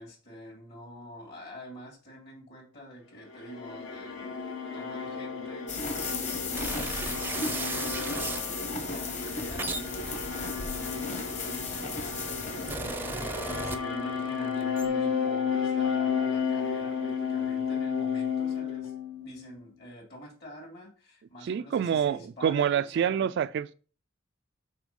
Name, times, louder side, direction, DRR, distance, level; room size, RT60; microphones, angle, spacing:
voice 1, 0.0-5.7 6.4-8.1 8.8-23.3, equal, 55° left, 2.6 m, -47 dB
sound 1, 3.2-19.5, left 6 dB, 75° left, 1.2 m, -32 dB
sound 2, 5.7-12.8, left 3 dB, 35° left, 1.4 m, -36 dB
sound 3, 6.5-8.5 9.2-11.6 12.3-14.3 14.5-14.9, right 3 dB, 10° right, 0.5 m, -36 dB
voice 2, 21.4-23.7, right 8 dB, 60° right, 0.3 m, -27 dB
6.1 x 4.3 x 5.3 m
head